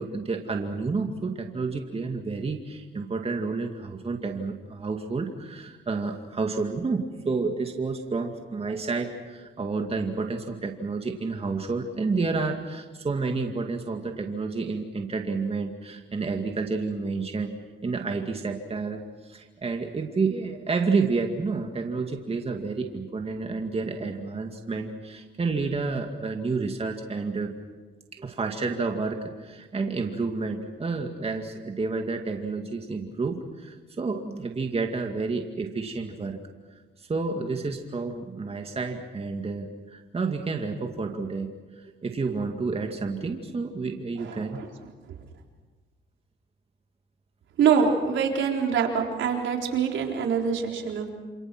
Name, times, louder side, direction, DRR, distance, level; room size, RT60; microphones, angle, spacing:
voice 1, 0.0-17.5 17.8-27.5 28.1-36.4 37.0-41.5 41.8-44.6, right 4 dB, 30° right, 4 dB, 2.3 m, -30 dB
voice 2, 47.6-51.1, right 6 dB, 75° right, 2 dB, 4.1 m, -24 dB
27.5 x 27.5 x 6.2 m, 1.3 s
cardioid pair, 90°, 20 cm